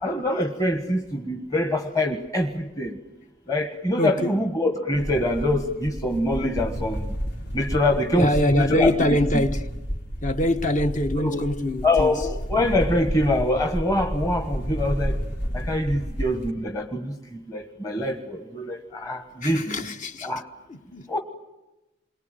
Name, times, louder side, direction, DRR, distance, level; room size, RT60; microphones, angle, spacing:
voice 1, 0.0-2.9 3.5-7.1 7.5-9.2 11.2-11.4 11.8-15.2 15.5-19.8 20.2-20.4 21.1-21.2, left 1 dB, 20° left, 1.4 m, -24 dB
voice 2, 4.0-4.4 8.1-9.7 10.2-12.2 19.4-20.3 20.7-21.1, left 1 dB, 40° left, 1.2 m, -24 dB
sound 1, 4.9-16.5, equal, 60° left, 3.8 m, -31 dB
28.5 x 23.0 x 9.1 m
head